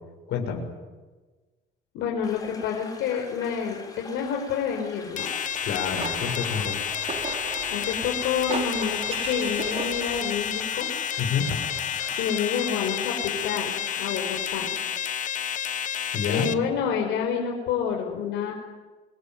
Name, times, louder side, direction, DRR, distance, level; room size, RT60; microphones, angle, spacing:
voice 1, 0.3-0.7 5.6-6.8 11.2-11.5 16.1-16.5, left 7 dB, 65° left, 1 dB, 6.6 m, -28 dB
voice 2, 1.9-5.3 7.7-10.9 12.2-14.7 16.3-18.5, left 7 dB, 80° left, 1 dB, 5.1 m, -28 dB
sound 1, 2.2-14.4, left 3 dB, 20° left, 5.4 m, -45 dB
sound 2, 5.2-16.5, left 9 dB, 45° left, 1.3 m, -30 dB
sound 3, 5.5-10.6, right 4 dB, 35° right, 4.5 m, -36 dB
27.0 x 21.0 x 9.4 m, 1.3 s
cardioid pair, 145°, 18 cm